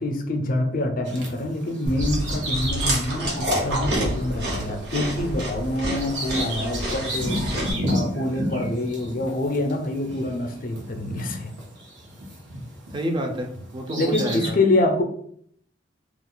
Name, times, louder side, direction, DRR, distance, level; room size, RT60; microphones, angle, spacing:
voice 1, 0.0-7.4 7.9-11.5 14.0-15.0, left 1 dB, 50° left, 5 dB, 0.5 m, -26 dB
Bird vocalization bird call bird song, 1.1-13.1 13.6-14.5, equal, 85° right, 0.9 m, -32 dB
Chewing mastication, 1.9-7.7, right 1 dB, 65° right, 1.1 m, -28 dB
voice 2, 12.9-14.6, right 1 dB, 25° right, 3 dB, 0.5 m, -29 dB
2.4 x 2.3 x 3.7 m, 0.63 s
head